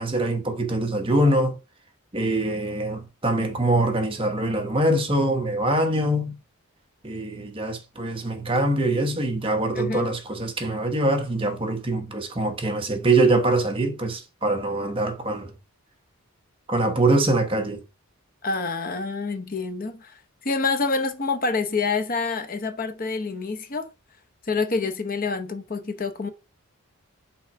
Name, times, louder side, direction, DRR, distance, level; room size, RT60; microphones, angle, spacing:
voice 1, 0.0-1.6 2.1-6.4 7.0-15.5 16.7-17.8, right 2 dB, 25° right, 0.9 m, -23 dB
voice 2, 9.7-10.1 18.4-23.9 24.5-26.3, left 4 dB, 40° left, 0.8 m, -27 dB
5.8 x 3.9 x 4.7 m
head